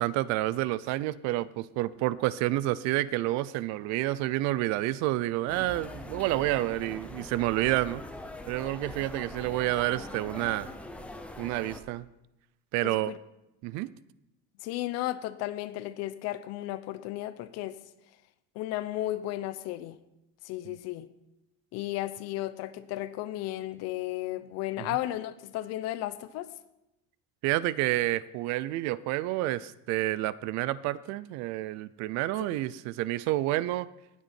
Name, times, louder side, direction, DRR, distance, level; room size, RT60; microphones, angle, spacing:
voice 1, 0.0-8.0 8.5-10.7 11.4-12.1 12.7-13.1 13.6-13.9 20.6-20.8 24.8-25.0 27.4-33.9, right 16 dB, 65° right, 19 dB, 0.5 m, -29 dB
sound 1, 5.5-11.8, left 2 dB, 5° left, 0.6 m, -42 dB
voice 2, 12.8-13.2 14.6-17.8 18.6-20.0 20.4-21.1 21.7-26.5, left 15 dB, 55° left, 14 dB, 0.7 m, -34 dB
18.5 x 8.3 x 4.4 m, 0.90 s
cardioid pair, 180°, 30 cm